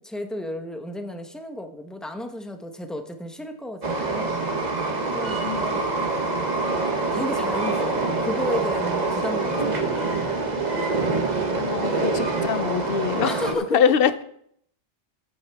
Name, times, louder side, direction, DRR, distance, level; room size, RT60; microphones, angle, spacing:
voice 1, 0.0-4.3 5.1-5.9 7.1-10.2 13.2-13.8, left 1 dB, ahead, 5 dB, 0.9 m, -33 dB
Train, 3.8-13.5, right 3 dB, 40° right, 1.3 m, -25 dB
voice 2, 5.4-5.8 11.5-14.1, left 7 dB, 60° left, 12 dB, 0.8 m, -24 dB
14.5 x 8.9 x 3.5 m, 0.70 s
omnidirectional pair, 1.1 m